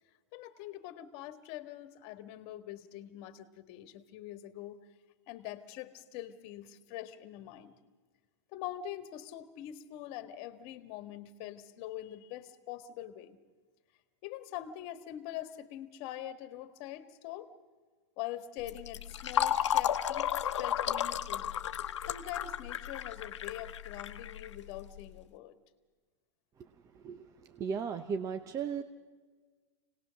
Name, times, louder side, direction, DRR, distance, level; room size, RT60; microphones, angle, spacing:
voice 1, 0.3-4.8 5.3-7.7 8.5-13.4 14.2-17.5 18.2-20.3 20.6-21.5 22.1-25.6, left 12 dB, 45° left, 10 dB, 1.7 m, -44 dB
Fill (with liquid), 18.6-25.0, left 10 dB, 80° left, 1.0 m, -33 dB
voice 2, 27.5-28.8, right 6 dB, 20° right, 8 dB, 0.8 m, -35 dB
25.5 x 19.0 x 6.5 m, 1.4 s
hypercardioid pair, 130°, 15 cm